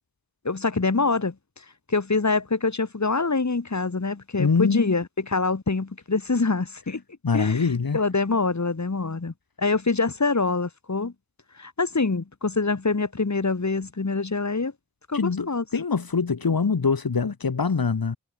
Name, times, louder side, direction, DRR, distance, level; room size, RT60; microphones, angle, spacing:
voice 1, 0.4-1.3 1.9-7.0 7.3-7.7 7.9-11.1 11.6-14.7 15.1-15.6, left 3 dB, 55° left, 2.7 m, -25 dB
voice 2, 4.4-4.9 7.2-8.0 15.1-18.2, left 5 dB, 85° left, 2.8 m, -24 dB
cardioid pair, 40°, 35 cm